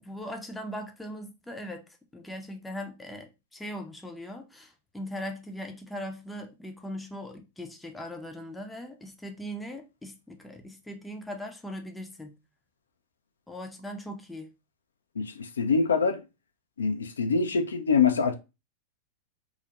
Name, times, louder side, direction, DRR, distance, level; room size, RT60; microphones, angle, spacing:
voice 1, 0.0-1.8 2.1-12.4 13.5-14.5, equal, 5° left, 0.4 m, -39 dB
voice 2, 15.2-16.2 16.8-18.3, left 5 dB, 85° left, 0.3 m, -24 dB
2.3 x 2.0 x 2.7 m
hypercardioid pair, 100°, 0 cm